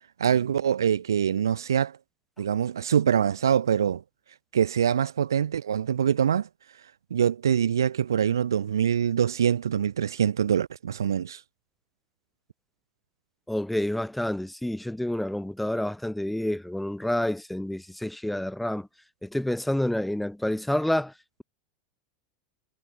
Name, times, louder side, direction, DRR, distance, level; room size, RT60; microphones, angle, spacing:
voice 1, 0.2-2.0 2.4-4.0 4.5-6.5 7.1-11.4, right 8 dB, 80° right, 1.9 m, -24 dB
voice 2, 13.5-18.9 19.2-21.1, left 1 dB, 5° left, 6.9 m, -28 dB
hypercardioid pair, 85°, 2 cm